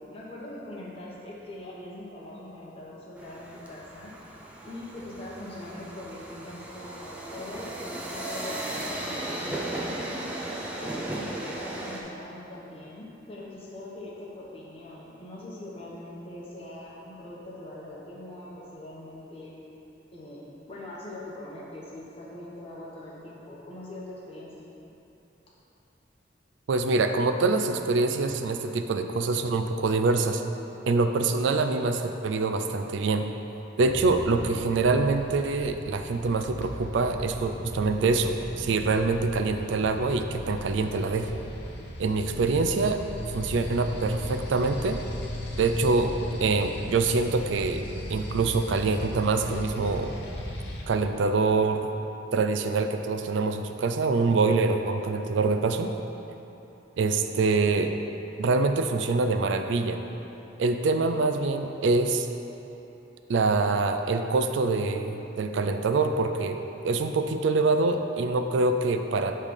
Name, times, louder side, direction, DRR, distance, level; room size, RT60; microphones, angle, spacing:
voice 1, 0.0-4.1 4.6-10.3 10.8-19.5 20.1-20.4 20.7-24.5, left 1 dB, 30° left, -6 dB, 1.0 m, -42 dB
sound 1, 3.2-12.0, right 1 dB, 5° right, 0.6 m, -36 dB
voice 2, 26.7-30.4 30.9-33.3 33.8-41.3 42.0-43.0 43.3-45.0 45.6-46.1 46.4-50.1 50.9-51.9 52.3-55.9 57.0-57.9 58.4-60.0 60.6-62.3 63.3-66.6 66.8-69.4, right 3 dB, 80° right, 7 dB, 0.4 m, -25 dB
sound 2, 33.8-50.8, left 1 dB, 60° left, 0.7 m, -37 dB
7.4 x 3.3 x 5.1 m, 3.0 s
head